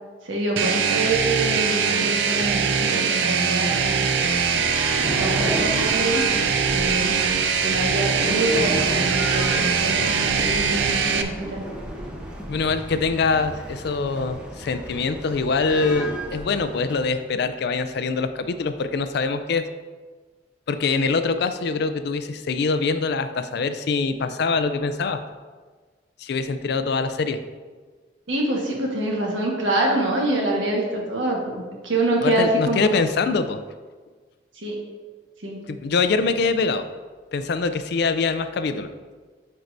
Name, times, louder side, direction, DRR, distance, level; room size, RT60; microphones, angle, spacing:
voice 1, 0.2-4.0 4.9-7.2 7.6-11.6 28.3-32.9 34.5-34.8 35.4-35.6, right 1 dB, 85° right, -1 dB, 1.4 m, -25 dB
sound 1, 0.6-11.2, right 6 dB, 65° right, 0.5 m, -22 dB
sound 2, 4.2-17.0, equal, 5° right, 0.8 m, -34 dB
voice 2, 12.5-19.6 20.7-25.2 26.2-27.4 32.2-33.6 35.7-36.8 37.3-38.9, left 4 dB, 60° left, 10 dB, 0.4 m, -24 dB
9.3 x 4.6 x 2.6 m, 1.4 s
head